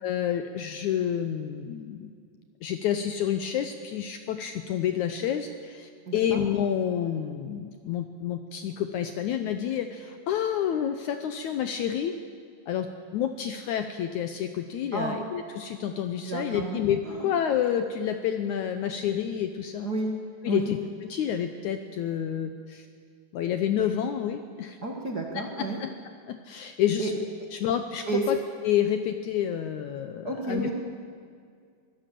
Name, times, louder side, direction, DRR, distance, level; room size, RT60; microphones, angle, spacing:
voice 1, 0.0-2.1 2.6-12.1 12.7-19.9 20.4-22.9 23.3-24.8 25.3-25.9 26.3-27.2 27.5-28.4 28.6-30.7, left 9 dB, 75° left, 7 dB, 1.9 m, -29 dB
voice 2, 6.1-6.4 14.9-15.2 16.2-17.3 19.8-20.1 20.4-20.7 24.8-25.8 27.0-27.1 28.1-28.2 30.2-30.7, right 3 dB, 40° right, 0 dB, 1.6 m, -31 dB
23.5 x 16.0 x 7.5 m, 2.2 s
omnidirectional pair, 4.1 m